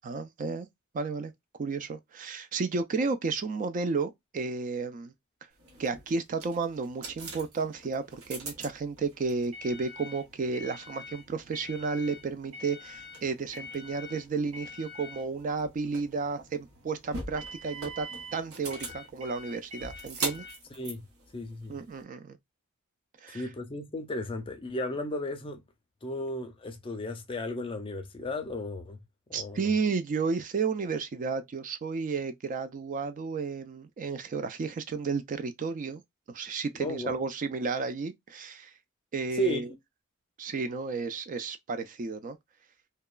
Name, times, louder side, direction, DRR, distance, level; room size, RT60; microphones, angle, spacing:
voice 1, 0.0-0.7 0.9-1.3 1.6-5.1 5.8-20.5 21.7-22.4 23.2-23.4 29.3-36.0 36.3-38.7 39.1-39.7 40.4-42.4, right 4 dB, 35° right, 0.3 m, -32 dB
sound 1, 5.6-22.0, right 2 dB, 75° right, 1.0 m, -42 dB
voice 2, 20.7-21.0 21.3-21.7 23.3-25.6 26.0-29.0 29.3-29.7 36.8-37.1 39.3-39.6, left 1 dB, 25° left, 0.4 m, -34 dB
2.8 x 2.2 x 2.3 m
head